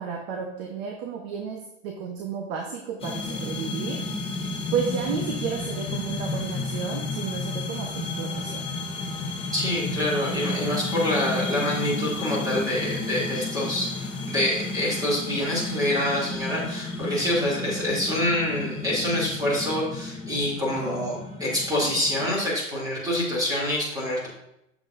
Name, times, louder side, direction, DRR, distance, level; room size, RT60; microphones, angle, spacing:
voice 1, 0.0-4.0 4.7-8.7, right 6 dB, 45° right, 2 dB, 1.1 m, -32 dB
sound 1, 3.0-22.3, left 3 dB, 15° left, 0.9 m, -32 dB
voice 2, 9.5-24.3, left 1 dB, 10° right, -6 dB, 2.8 m, -26 dB
7.4 x 7.1 x 2.6 m, 0.83 s
hypercardioid pair, 120°, 40 cm